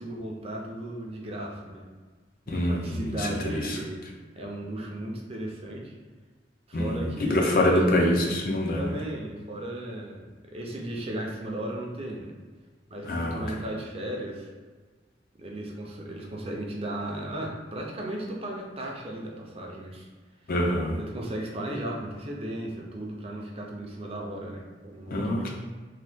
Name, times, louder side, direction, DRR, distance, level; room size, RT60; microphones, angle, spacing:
voice 1, 0.0-1.8 2.5-4.0 4.3-5.9 6.7-7.9 8.7-12.3 12.9-14.5 15.3-20.1 20.9-25.5, right 1 dB, 35° right, -1 dB, 0.4 m, -35 dB
voice 2, 2.5-3.8 6.7-9.0 13.0-13.4 20.5-21.0 25.1-25.5, left 1 dB, 50° left, -1 dB, 0.5 m, -25 dB
2.8 x 2.2 x 3.4 m, 1.4 s
head